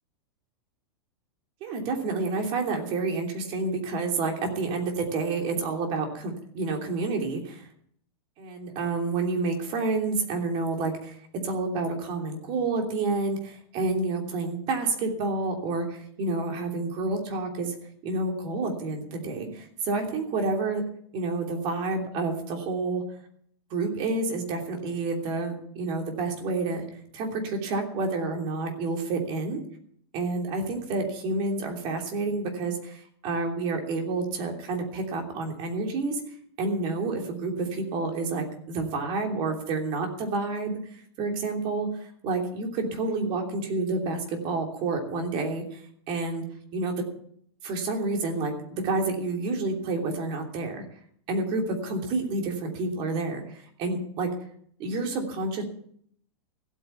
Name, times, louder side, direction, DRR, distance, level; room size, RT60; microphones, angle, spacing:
voice 1, 1.6-7.7 8.4-11.2 11.4-17.7 18.0-20.8 21.1-23.0 23.7-26.8 27.1-29.6 30.1-36.2 36.6-46.4 46.7-47.1 47.6-50.8 51.3-54.3 54.8-55.6, right 3 dB, 35° right, 2 dB, 3.0 m, -29 dB
15.0 x 8.8 x 6.9 m, 0.64 s
supercardioid pair, 155°, 15 cm